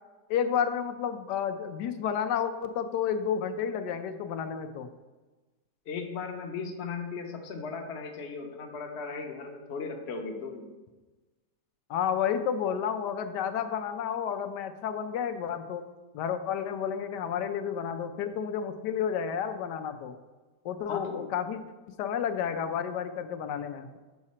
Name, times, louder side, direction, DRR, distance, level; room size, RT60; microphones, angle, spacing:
voice 1, 0.3-4.9 11.9-15.8 16.1-20.1 20.6-21.6 22.0-23.9, left 8 dB, 85° left, 8 dB, 1.2 m, -31 dB
voice 2, 5.9-10.7 20.9-21.3, left 5 dB, 50° left, 3 dB, 1.0 m, -37 dB
7.1 x 4.8 x 4.2 m, 1.2 s
omnidirectional pair, 1.8 m